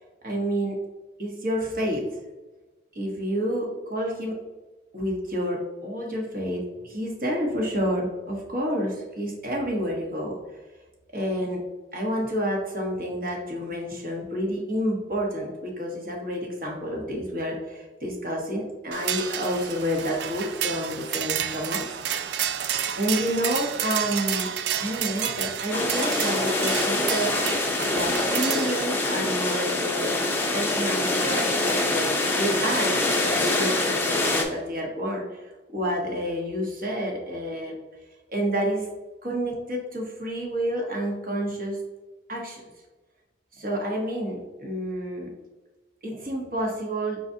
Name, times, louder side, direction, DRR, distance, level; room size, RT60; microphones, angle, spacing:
voice 1, 0.2-0.8 1.2-2.1 2.9-4.4 4.9-10.4 11.1-11.6 11.9-21.9 23.0-24.5 24.7-30.2 30.5-37.8 38.3-38.9 39.2-41.8 42.3-42.6 43.5-45.3 46.0-47.2, equal, 50° right, 0 dB, 1.1 m, -29 dB
sound 1, 18.9-28.8, right 9 dB, 70° right, 0.3 m, -30 dB
sound 2, 25.7-34.4, left 2 dB, 10° left, 0.5 m, -25 dB
5.0 x 3.9 x 2.7 m, 1.2 s
head